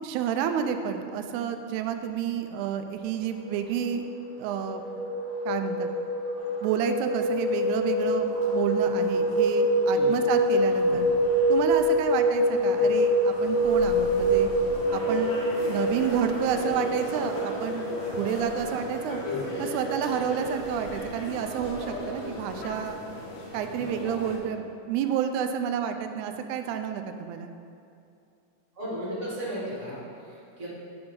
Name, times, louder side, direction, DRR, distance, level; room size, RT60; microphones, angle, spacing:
voice 1, 0.0-4.1 4.4-4.8 5.5-5.9 6.6-11.1 11.5-14.5 14.9-19.2 19.6-23.0 23.5-27.5, right 8 dB, 80° right, 7 dB, 1.9 m, -30 dB
sound 1, 3.2-21.0, equal, 50° right, 1.6 m, -26 dB
sound 2, 6.4-24.4, left 2 dB, 65° left, 1.3 m, -39 dB
voice 2, 23.8-24.1 28.7-30.7, equal, 35° right, -8 dB, 1.3 m, -36 dB
9.6 x 3.4 x 5.2 m, 2.5 s
omnidirectional pair, 3.6 m